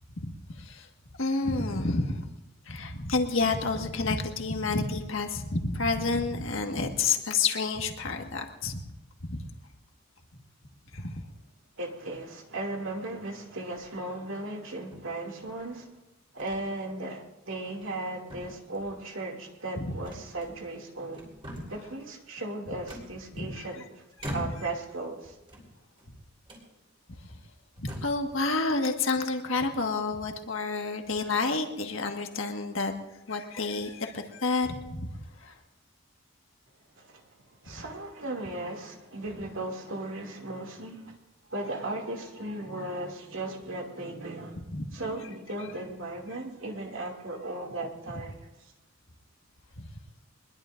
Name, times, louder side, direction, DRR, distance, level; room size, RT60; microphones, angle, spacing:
voice 1, 0.2-0.9 1.2-2.2 2.6-8.8 9.3-9.4 10.9-11.2 19.8-19.9 23.4-23.5 24.2-24.4 27.8-32.9 33.3-35.1 35.4-35.5 44.7-44.8, left 3 dB, 70° left, 1.7 m, -29 dB
voice 2, 11.8-15.9 16.3-21.3 21.7-24.0 24.3-25.4 37.0-41.2 41.5-44.6 44.9-48.7, right 2 dB, 70° right, 2.5 m, -37 dB
sound 1, 13.7-14.1 14.9-15.7 16.4-16.6 17.0-17.2 17.7-18.0 18.3-19.0 20.0-20.8 21.1-21.9 22.9-23.7 24.2-24.8 25.4-26.1 26.5-26.7 27.3-27.4 27.8-28.3, equal, 25° right, 4.0 m, -43 dB
23.0 x 21.0 x 2.6 m
head